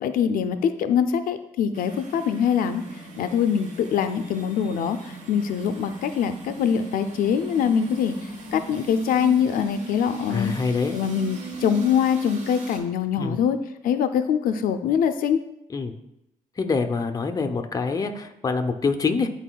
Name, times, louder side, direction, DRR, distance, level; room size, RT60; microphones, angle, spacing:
voice 1, 0.0-2.8 3.2-8.2 8.5-10.5 10.9-13.6 13.8-15.4, left 8 dB, 90° left, 9 dB, 0.4 m, -23 dB
sound 1, 1.7-12.8, right 1 dB, 55° right, 1.2 m, -38 dB
voice 2, 10.3-11.0 13.2-13.4 15.7-15.9 16.6-19.3, left 4 dB, 25° left, 6 dB, 0.6 m, -25 dB
10.5 x 4.0 x 2.3 m, 0.84 s
cardioid pair, 120°, 14 cm